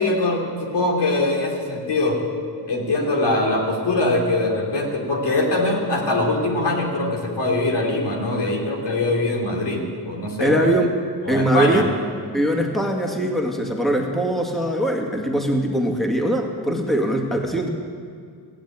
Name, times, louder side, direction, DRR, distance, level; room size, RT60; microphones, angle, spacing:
voice 1, 0.0-2.2 2.7-10.8 11.2-11.8, left 2 dB, 80° left, 0 dB, 3.1 m, -22 dB
voice 2, 10.4-10.9 11.3-11.9 12.3-17.7, right 1 dB, ahead, 1 dB, 2.1 m, -21 dB
16.0 x 10.5 x 8.7 m, 2.2 s
cardioid pair, 75°, 41 cm